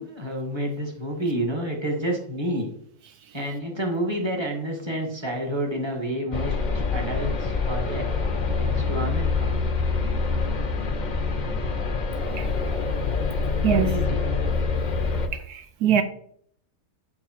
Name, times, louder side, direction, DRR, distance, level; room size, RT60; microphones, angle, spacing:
voice 1, 0.0-2.7 3.3-8.1 8.6-9.6 13.7-14.3, right 1 dB, 15° right, 0 dB, 1.7 m, -29 dB
sound 1, 6.3-15.3, left 4 dB, 40° left, 0.7 m, -25 dB
voice 2, 15.3-16.0, right 8 dB, 80° right, 9 dB, 1.1 m, -23 dB
8.5 x 5.3 x 4.5 m, 0.64 s
omnidirectional pair, 1.7 m